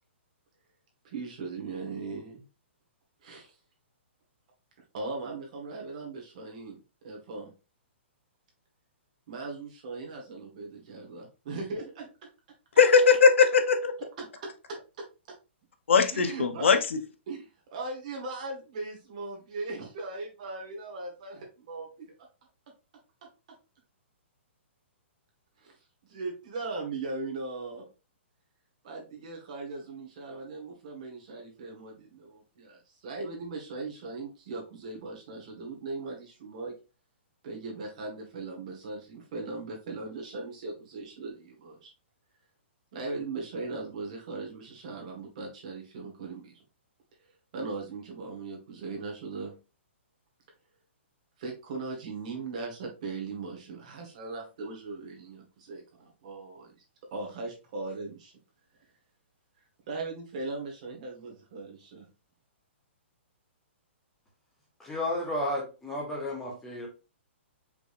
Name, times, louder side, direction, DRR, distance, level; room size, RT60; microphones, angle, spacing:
voice 1, 1.0-2.4 3.2-3.5 4.9-6.8 7.0-7.5 9.3-12.3 14.2-15.1 16.1-16.8 17.3-22.1 25.6-25.7 26.1-27.9 28.8-36.7 37.4-41.9 42.9-46.6 47.5-49.5 51.4-56.7 57.1-58.3 59.9-62.1, right 3 dB, 35° right, 1.4 m, -39 dB
voice 2, 12.8-13.9 15.9-16.8, left 5 dB, 75° left, 0.8 m, -20 dB
voice 3, 64.8-66.9, left 1 dB, 5° left, 0.9 m, -32 dB
5.1 x 3.4 x 2.5 m
hypercardioid pair, 180°, 7 cm